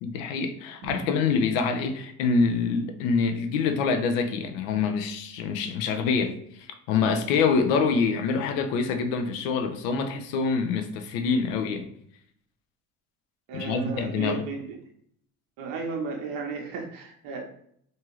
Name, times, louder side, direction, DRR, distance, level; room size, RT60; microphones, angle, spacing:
voice 1, 0.0-11.9 13.5-14.4, left 5 dB, 85° left, 0.5 m, -26 dB
voice 2, 13.5-14.8 15.6-17.4, right 4 dB, 75° right, 0.7 m, -34 dB
2.7 x 2.4 x 3.0 m
supercardioid pair, 70°, 37 cm